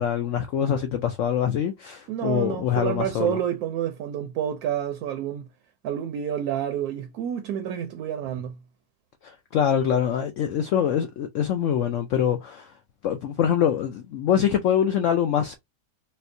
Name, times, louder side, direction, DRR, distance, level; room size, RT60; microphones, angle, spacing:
voice 1, 0.0-3.4 9.2-12.7 13.0-15.5, left 9 dB, 75° left, 0.7 m, -24 dB
voice 2, 2.1-5.5 5.8-8.6, right 9 dB, 70° right, 1.0 m, -29 dB
4.3 x 2.1 x 2.6 m
omnidirectional pair, 1.8 m